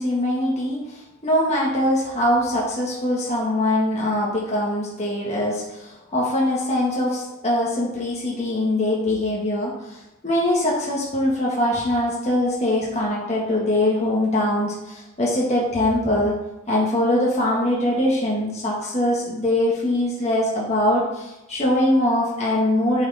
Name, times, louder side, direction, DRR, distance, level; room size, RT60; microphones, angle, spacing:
voice 1, 0.0-10.0 10.2-16.4 16.7-23.1, left 1 dB, 30° left, -5 dB, 1.6 m, -22 dB
7.9 x 6.4 x 3.5 m, 0.95 s
head